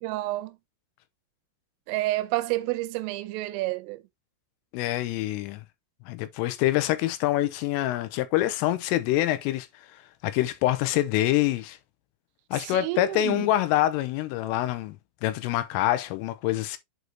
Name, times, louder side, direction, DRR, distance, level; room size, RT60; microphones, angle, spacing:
voice 1, 0.0-0.6 1.9-4.0 12.6-13.5, right 18 dB, 80° right, 3.1 m, -29 dB
voice 2, 4.7-5.6 6.1-9.7 10.2-11.8 12.5-15.0 15.2-16.8, left 14 dB, 85° left, 3.2 m, -25 dB
7.8 x 5.1 x 2.7 m
omnidirectional pair, 6.0 m